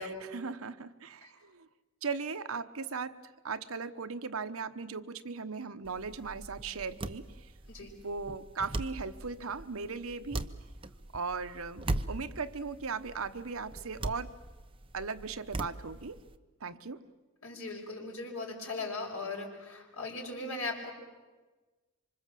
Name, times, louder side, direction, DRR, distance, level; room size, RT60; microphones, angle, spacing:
voice 1, 0.0-1.7 2.0-7.5 8.0-10.5 11.1-14.3 14.9-16.2 16.6-17.0, right 4 dB, 75° right, 10 dB, 1.0 m, -38 dB
sound 1, 5.8-16.4, right 2 dB, 25° right, 0.8 m, -40 dB
voice 2, 17.4-20.9, left 3 dB, 80° left, 0 dB, 5.9 m, -38 dB
26.5 x 25.5 x 7.6 m, 1.3 s
head